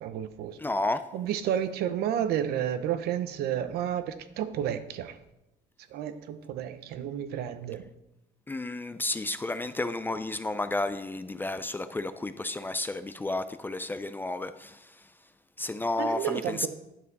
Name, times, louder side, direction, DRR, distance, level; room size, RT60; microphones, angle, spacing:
voice 1, 0.0-0.6 1.1-5.2 5.9-7.8 16.0-16.7, right 10 dB, 75° right, 0.8 m, -31 dB
voice 2, 0.6-1.0 8.5-14.9 15.6-16.7, left 2 dB, 10° left, 0.4 m, -32 dB
9.9 x 7.4 x 4.0 m
cardioid pair, 140°, 17 cm